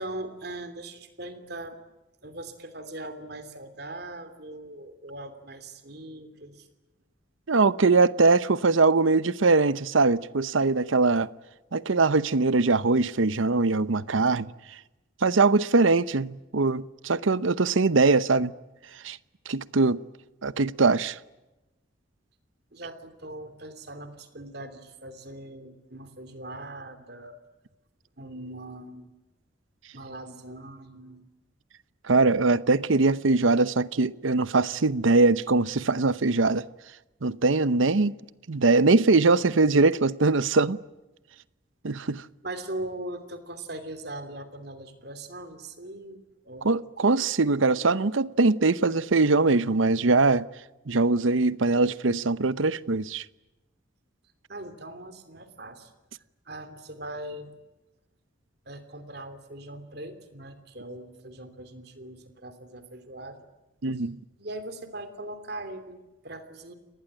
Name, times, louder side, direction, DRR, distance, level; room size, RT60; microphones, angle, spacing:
voice 1, 0.0-1.8 2.2-6.7 22.7-27.4 28.2-29.1 29.9-31.2 42.4-46.7 54.5-55.9 56.4-57.5 58.6-63.5 63.9-64.1 64.4-66.7, right 1 dB, 55° right, 3.0 m, -40 dB
voice 2, 7.5-11.3 11.7-14.5 15.2-18.5 19.0-19.2 19.5-20.0 20.4-21.2 32.1-36.6 37.2-38.1 38.5-40.8 41.8-42.2 46.6-50.5 50.9-53.2 63.8-64.2, right 3 dB, 85° right, 0.8 m, -22 dB
30.0 x 19.5 x 8.9 m
head